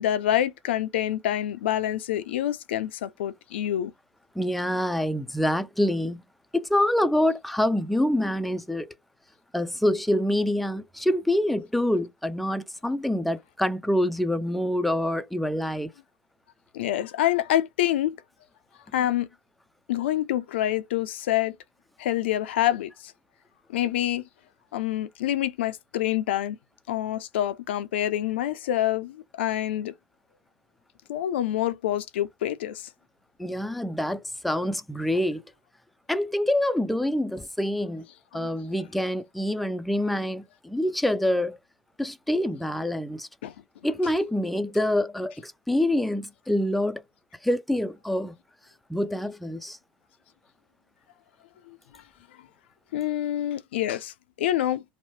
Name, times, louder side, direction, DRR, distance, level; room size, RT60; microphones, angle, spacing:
voice 1, 0.0-3.9 16.7-18.2 18.9-19.3 19.9-21.6 22.0-23.1 23.7-24.3 24.7-26.6 26.9-29.9 31.1-32.9 38.3-38.5 43.4-43.5 51.9-52.0 52.9-54.8, left 12 dB, 80° left, 0.4 m, -27 dB
voice 2, 4.4-6.2 6.5-8.9 9.5-15.9 33.4-35.4 36.1-38.0 38.3-41.6 42.0-43.3 43.8-47.0 47.4-48.4 48.9-49.8, left 1 dB, ahead, 0.3 m, -26 dB
2.8 x 2.1 x 3.0 m
hypercardioid pair, 100°, 6 cm